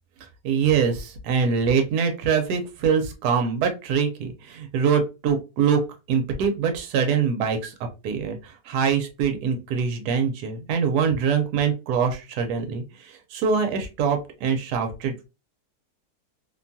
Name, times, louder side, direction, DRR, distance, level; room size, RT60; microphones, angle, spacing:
voice 1, 0.4-5.8 6.1-7.7 8.0-15.2, right 6 dB, 75° right, 5 dB, 1.2 m, -24 dB
2.9 x 2.2 x 2.5 m, 0.28 s
omnidirectional pair, 1.7 m